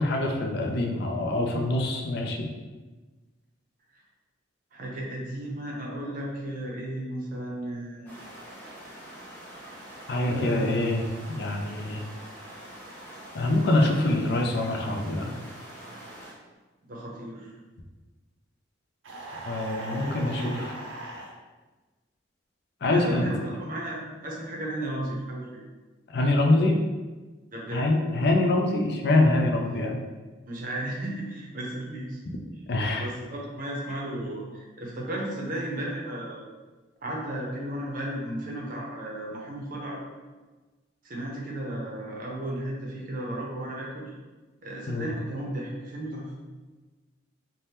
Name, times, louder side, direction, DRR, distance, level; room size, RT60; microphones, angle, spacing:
voice 1, 0.0-2.5 10.1-11.0 11.3-12.0 13.3-15.4 19.5-20.7 22.8-23.3 26.1-26.8 27.7-30.0 32.7-33.1 44.9-45.1, left 2 dB, 55° left, 2 dB, 0.4 m, -25 dB
voice 2, 4.7-8.1 10.2-10.7 16.8-17.5 19.8-20.7 22.8-25.6 27.5-27.8 29.6-29.8 30.5-32.2 33.0-36.4 37.0-40.0 41.0-44.1 44.6-46.3, right 1 dB, 45° right, -2 dB, 0.6 m, -34 dB
sound 1, 8.1-16.3, right 1 dB, 10° left, 0.6 m, -44 dB
sound 2, 19.0-21.3, right 2 dB, 85° right, 0.6 m, -39 dB
2.7 x 2.1 x 3.3 m, 1.3 s
head